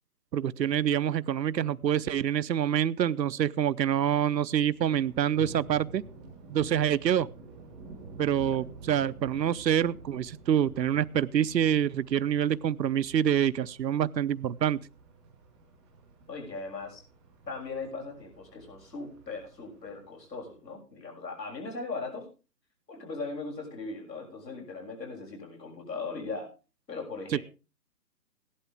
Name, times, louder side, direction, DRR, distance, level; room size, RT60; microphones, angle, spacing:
voice 1, 0.3-6.0 6.5-7.3 8.2-14.8 27.3-27.4, right 9 dB, 90° right, 0.7 m, -26 dB
Thunder, 4.7-20.6, right 3 dB, ahead, 0.7 m, -49 dB
voice 2, 16.3-17.0 17.5-22.3 22.9-26.5 26.9-27.4, left 3 dB, 85° left, 6.8 m, -39 dB
16.0 x 11.5 x 3.4 m
hypercardioid pair, 155°, 49 cm